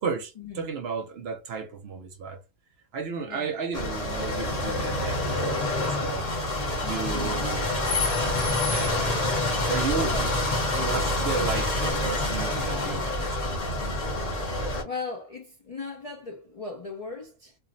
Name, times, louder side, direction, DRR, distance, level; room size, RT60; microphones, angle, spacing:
voice 1, 0.0-2.4 2.9-6.3 6.8-8.2 8.6-9.2 9.6-10.3 10.7-13.5, right 5 dB, 65° right, 0.7 m, -33 dB
sound 1, 3.7-14.8, left 2 dB, 35° left, 0.8 m, -27 dB
voice 2, 7.1-7.5 10.0-10.3 11.4-11.5 14.6-17.6, left 4 dB, 55° left, 0.4 m, -38 dB
2.5 x 2.0 x 3.7 m
omnidirectional pair, 1.3 m